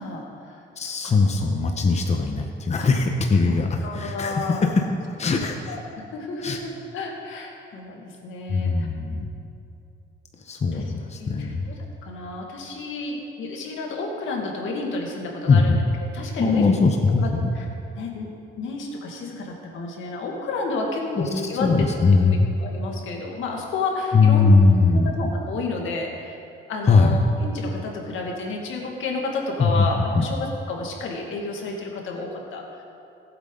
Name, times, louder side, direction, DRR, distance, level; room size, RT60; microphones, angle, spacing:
voice 1, 0.0-1.1 3.5-3.6 3.8-4.6 5.7-5.8 6.1-8.9 10.7-10.8 11.2-11.7 12.0-16.7 17.2-17.3 18.0-18.3 18.6-21.7 22.2-26.4 26.7-32.8, left 3 dB, 80° left, 0 dB, 2.1 m, -31 dB
voice 2, 0.8-4.8 5.2-5.8 6.4-6.6 8.5-9.3 10.4-11.7 15.5-15.8 16.4-17.5 21.1-21.3 21.6-22.5 24.1-25.2 26.8-27.2 29.6-29.9 30.1-30.3, left 4 dB, 35° left, 3 dB, 1.0 m, -20 dB
19.0 x 8.2 x 3.9 m, 2.6 s
cardioid pair, 90°, 20 cm